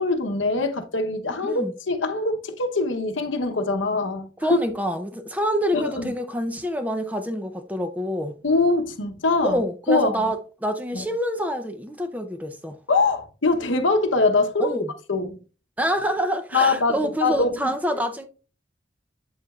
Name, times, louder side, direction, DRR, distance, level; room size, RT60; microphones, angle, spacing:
voice 1, 0.0-4.6 5.7-6.1 8.4-9.6 9.9-10.2 10.9-11.0 12.9-14.8 15.1-15.4 16.5-17.5 17.9-18.0, left 3 dB, 85° left, 0.9 m, -23 dB
voice 2, 1.4-1.7 4.4-8.4 9.4-12.8 14.6-14.9 15.8-18.3, equal, 10° right, 0.5 m, -27 dB
7.8 x 7.4 x 2.4 m
head